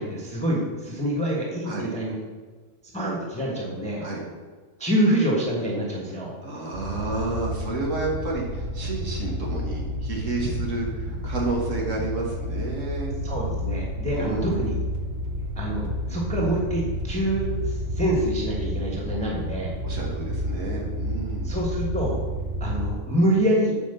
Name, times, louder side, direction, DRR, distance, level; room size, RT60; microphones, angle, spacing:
voice 1, 0.0-2.2 2.9-4.1 4.8-6.3 13.2-14.7 15.6-19.7 21.4-22.2 22.6-23.7, right 1 dB, 5° left, -4 dB, 1.2 m, -26 dB
voice 2, 6.4-13.1 14.1-14.5 19.8-21.5, right 2 dB, 70° right, -2 dB, 1.8 m, -30 dB
sound 1, 6.7-22.9, equal, 40° right, 0.9 m, -30 dB
8.1 x 4.7 x 6.8 m, 1.4 s
omnidirectional pair, 1.4 m